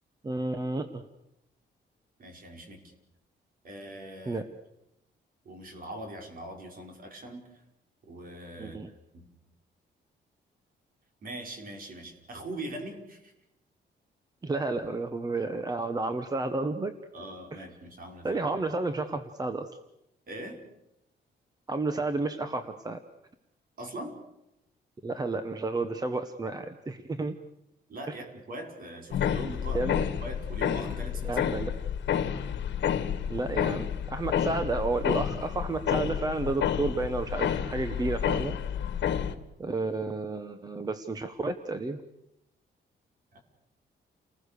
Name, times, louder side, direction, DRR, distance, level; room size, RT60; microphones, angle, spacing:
voice 1, 0.2-1.0 4.3-4.5 8.6-8.9 14.4-16.9 17.5-17.6 18.2-19.7 21.7-23.0 25.0-27.4 28.1-28.2 29.7-30.0 31.2-31.7 33.3-38.6 39.6-42.0, right 3 dB, 20° right, 9 dB, 1.1 m, -31 dB
voice 2, 2.2-2.8 3.6-4.4 5.4-7.4 8.1-8.8 9.1-9.2 11.2-13.3 17.1-18.4 20.3-20.6 23.8-24.2 27.9-31.4 43.3-43.4, right 1 dB, 50° right, 3 dB, 5.2 m, -41 dB
sound 1, 29.1-39.3, left 8 dB, 75° left, 1.7 m, -30 dB
30.0 x 20.0 x 6.8 m, 0.86 s
cardioid pair, 150°, 19 cm